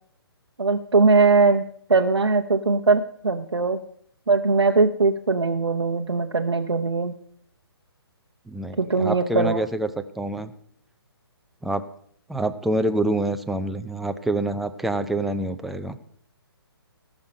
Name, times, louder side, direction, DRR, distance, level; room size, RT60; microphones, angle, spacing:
voice 1, 0.6-1.6 1.9-3.8 4.3-7.1 8.8-9.6, right 4 dB, 85° right, 2 dB, 0.8 m, -20 dB
voice 2, 8.5-9.9 10.2-10.5 11.6-11.8 12.3-16.0, right 1 dB, ahead, 7 dB, 0.4 m, -26 dB
17.5 x 6.3 x 5.4 m, 0.63 s
figure-of-eight pair, 135°, 13 cm